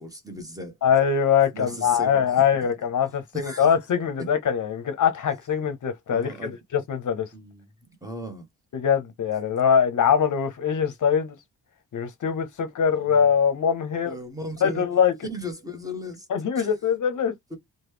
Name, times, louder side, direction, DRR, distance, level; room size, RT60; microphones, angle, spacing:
voice 1, 0.0-0.8 1.5-2.3 3.3-3.7 4.2-4.3 6.1-6.6 7.3-8.5 13.0-13.2 14.0-14.9 15.2-16.3 16.5-16.7 17.5-17.6, equal, 10° right, 0.9 m, -36 dB
voice 2, 0.8-7.3 8.7-11.4 11.9-14.1 14.6-15.1 16.3-17.3, left 7 dB, 60° left, 0.6 m, -23 dB
3.0 x 2.1 x 3.3 m
wide cardioid pair, 110°, 35 cm